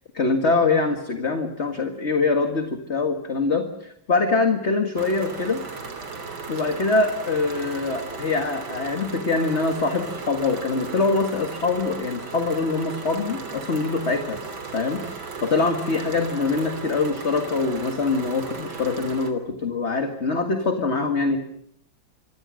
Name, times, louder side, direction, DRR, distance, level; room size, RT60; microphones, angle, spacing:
voice 1, 0.1-5.6 6.5-14.4 14.7-21.4, left 3 dB, 35° left, 5 dB, 2.0 m, -24 dB
sound 1, 5.0-19.3, right 4 dB, 80° right, 3.8 m, -36 dB
27.0 x 24.5 x 6.4 m, 0.71 s
omnidirectional pair, 2.1 m